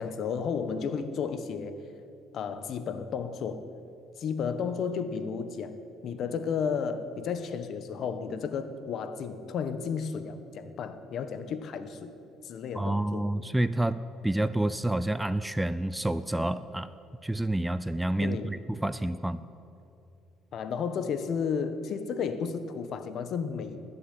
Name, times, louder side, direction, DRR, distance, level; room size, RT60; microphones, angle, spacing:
voice 1, 0.0-1.7 2.3-3.6 4.2-12.1 12.4-13.3 18.2-18.6 20.5-23.8, left 6 dB, 55° left, 10 dB, 1.2 m, -33 dB
voice 2, 12.7-16.9 17.2-19.4, right 1 dB, 5° right, 14 dB, 0.4 m, -29 dB
20.0 x 7.1 x 9.9 m, 2.7 s
cardioid pair, 115°, 0 cm